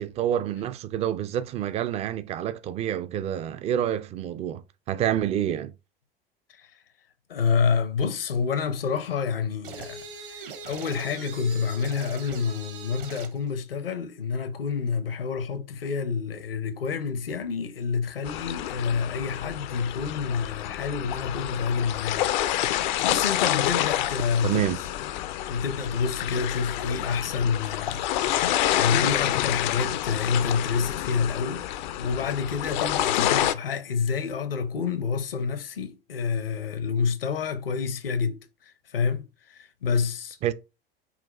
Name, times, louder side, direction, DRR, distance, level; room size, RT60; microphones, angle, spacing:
voice 1, 0.0-5.7 24.4-24.8 40.4-40.5, right 10 dB, 25° right, 0.3 m, -28 dB
voice 2, 7.3-10.0 10.3-10.4 10.7-22.3 22.6-24.6 25.4-31.7 32.0-40.4, left 5 dB, 75° left, 0.9 m, -28 dB
sound 1, 9.6-13.4, right 4 dB, 65° right, 1.0 m, -41 dB
sound 2, 18.2-33.5, left 13 dB, 50° left, 0.5 m, -28 dB
5.7 x 2.3 x 4.1 m
figure-of-eight pair, 80°, 29 cm